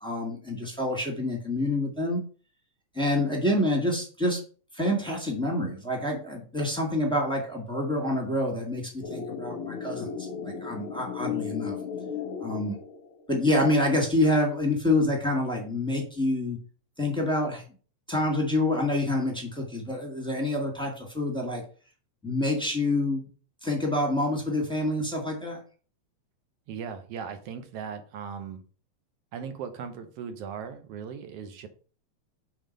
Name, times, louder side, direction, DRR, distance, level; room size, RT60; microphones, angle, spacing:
voice 1, 0.0-2.2 2.9-4.4 4.7-11.8 12.4-12.8 13.3-16.6 17.0-17.6 18.1-21.6 22.2-23.2 23.6-25.6, left 1 dB, 5° left, 0 dB, 1.1 m, -27 dB
sound 1, 9.0-13.3, left 7 dB, 65° left, 1.4 m, -35 dB
voice 2, 26.7-28.6 29.3-31.7, right 7 dB, 65° right, 8 dB, 1.7 m, -38 dB
6.4 x 4.3 x 5.3 m, 0.39 s
omnidirectional pair, 3.3 m